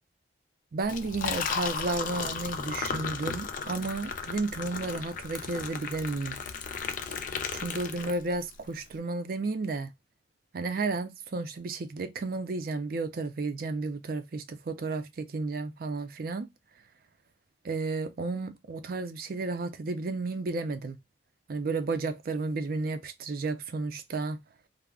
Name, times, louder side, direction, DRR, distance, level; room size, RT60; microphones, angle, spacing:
voice 1, 0.7-6.4 7.5-9.9 10.5-16.5 17.6-21.0 21.5-24.4, right 3 dB, 50° right, 0.4 m, -32 dB
Liquid, 0.8-8.5, left 6 dB, 45° left, 0.3 m, -35 dB
2.3 x 2.0 x 3.5 m
head